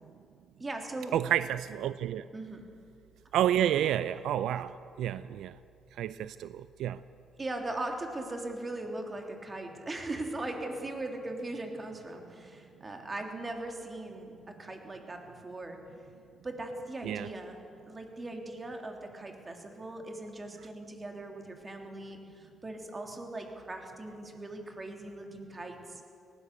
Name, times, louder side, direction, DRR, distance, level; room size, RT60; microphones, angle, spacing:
voice 1, 0.6-1.2 2.3-2.6 7.4-15.8 16.4-26.0, right 2 dB, 25° right, 3 dB, 3.3 m, -39 dB
voice 2, 1.1-2.2 3.3-5.6 6.0-7.0 17.0-17.3, right 11 dB, 80° right, 14 dB, 0.4 m, -30 dB
19.0 x 17.5 x 8.3 m, 2.4 s
cardioid pair, 90°, 0 cm